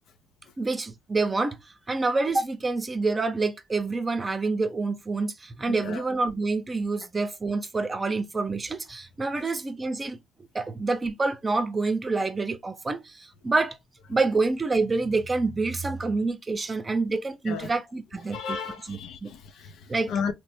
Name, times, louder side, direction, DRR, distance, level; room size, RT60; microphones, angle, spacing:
voice 1, 0.6-1.6 1.9-10.2 10.5-13.8 14.1-18.6 18.9-19.3 19.9-20.1, right 3 dB, 30° right, 0.6 m, -27 dB
voice 2, 5.7-6.0 17.5-17.7 18.3-20.3, left 6 dB, 70° left, 0.5 m, -34 dB
3.2 x 2.0 x 3.1 m
supercardioid pair, 60°, 0 cm